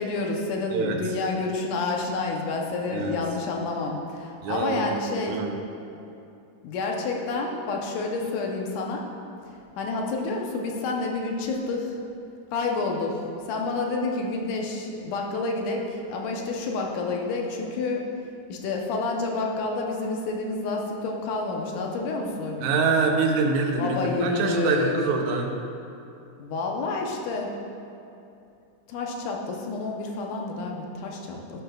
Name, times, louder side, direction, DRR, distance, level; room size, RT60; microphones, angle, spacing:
voice 1, 0.0-5.4 6.6-9.0 9.8-12.0 12.5-18.0 18.5-22.8 23.8-25.0 26.4-27.5 28.9-31.6, left 3 dB, 80° left, 0 dB, 2.5 m, -29 dB
voice 2, 4.4-4.9 5.3-5.6 22.6-25.5, right 4 dB, 75° right, 2 dB, 2.1 m, -25 dB
11.5 x 10.0 x 2.4 m, 2.7 s
omnidirectional pair, 3.6 m